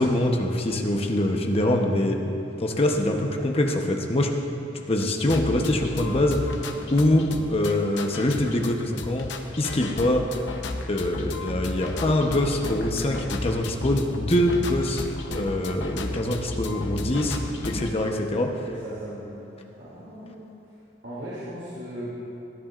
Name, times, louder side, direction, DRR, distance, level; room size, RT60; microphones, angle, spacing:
voice 1, 0.0-2.2 2.6-4.3 4.9-9.3 9.6-10.2 10.9-15.0 15.3-17.4 17.6-18.5, left 1 dB, 35° left, 2 dB, 0.9 m, -24 dB
sound 1, 5.0-17.9, left 2 dB, 90° left, 0.8 m, -33 dB
voice 2, 17.6-17.9 18.7-19.4 19.8-20.5 21.0-22.1, right 1 dB, 85° right, -9 dB, 2.6 m, -37 dB
18.5 x 10.5 x 2.5 m, 3.0 s
head